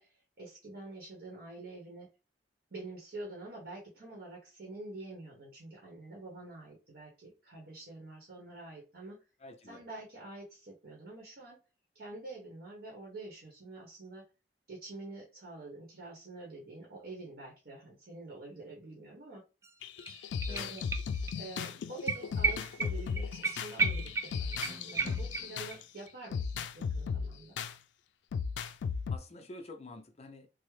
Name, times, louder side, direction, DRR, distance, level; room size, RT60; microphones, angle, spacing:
voice 1, 0.0-2.1 2.7-9.2 9.7-11.6 11.9-14.3 14.7-19.4 20.5-20.8 21.3-27.6, right 2 dB, 65° right, 1.0 m, -47 dB
voice 2, 9.4-9.8 20.5-20.8 29.1-30.5, left 2 dB, 35° left, 0.5 m, -48 dB
sound 1, 19.6-19.7 20.0-21.4 21.6-21.7 22.1-25.8 26.1-26.2, right 4 dB, 15° right, 0.3 m, -34 dB
sound 2, 19.8-25.8 26.3-27.7 28.3-29.2, left 6 dB, 90° left, 0.3 m, -36 dB
3.4 x 2.0 x 3.2 m
head